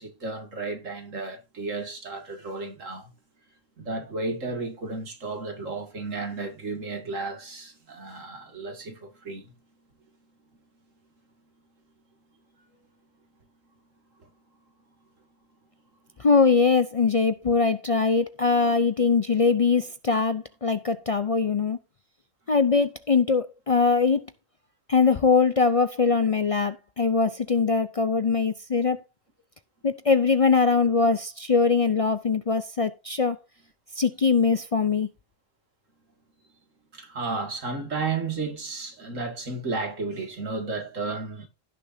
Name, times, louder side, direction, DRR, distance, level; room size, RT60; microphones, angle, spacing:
voice 1, 0.0-3.1 3.8-9.5 36.9-41.5, right 3 dB, 70° right, 2.4 m, -33 dB
voice 2, 16.2-21.8 22.5-24.2 24.9-29.0 29.8-33.4 33.9-35.1, left 4 dB, 65° left, 0.3 m, -22 dB
16.5 x 6.7 x 2.7 m
omnidirectional pair, 1.4 m